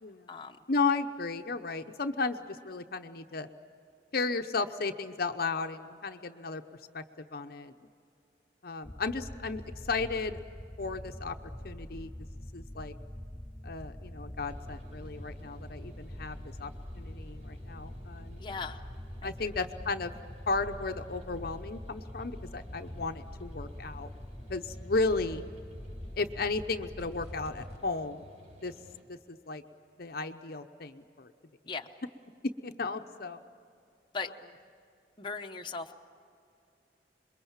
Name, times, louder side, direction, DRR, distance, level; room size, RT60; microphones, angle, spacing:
voice 1, 0.7-3.5 4.1-6.6 6.9-7.7 8.6-10.4 10.8-11.4 11.6-12.1 12.5-12.9 13.6-16.7 17.0-18.4 19.2-20.1 20.5-24.1 24.5-25.4 26.2-28.2 28.6-28.7 29.1-29.6 30.0-31.3 32.6-33.4, left 3 dB, 55° left, 7 dB, 0.8 m, -34 dB
sound 1, 8.8-27.8, equal, 5° left, 0.5 m, -44 dB
sound 2, 14.4-29.0, left 1 dB, 40° right, 4.4 m, -54 dB
voice 2, 18.4-18.8 19.2-19.5 31.7-31.9 34.1-34.3 35.2-36.0, left 4 dB, 25° left, 3 dB, 0.9 m, -38 dB
sound 3, 27.0-27.8, equal, 70° right, 2.8 m, -56 dB
27.0 x 22.0 x 7.3 m, 2.5 s
head